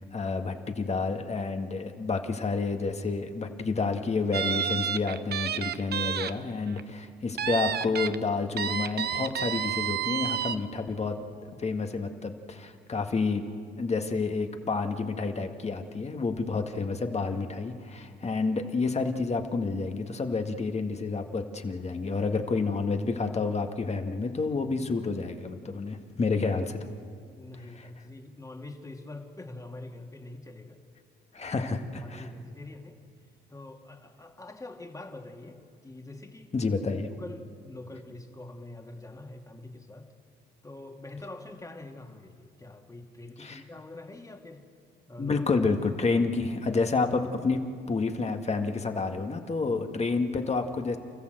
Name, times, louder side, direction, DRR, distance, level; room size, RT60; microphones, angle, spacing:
voice 1, 0.0-11.2 11.6-13.4 13.8-26.8 31.3-32.3 36.5-37.1 43.4-43.6 45.2-47.6 47.9-51.0, left 4 dB, 35° left, 5 dB, 1.9 m, -29 dB
sound 1, 4.3-6.3 6.7-6.8 7.4-8.1 8.6-10.6, right 9 dB, 55° right, 0.8 m, -30 dB
voice 2, 27.4-30.8 31.4-31.5 32.0-33.0 33.5-36.5 37.1-40.1 40.6-44.6 45.1-45.4, left 2 dB, 15° left, 3 dB, 2.3 m, -44 dB
29.0 x 14.5 x 7.9 m, 2.2 s
cardioid pair, 90°, 20 cm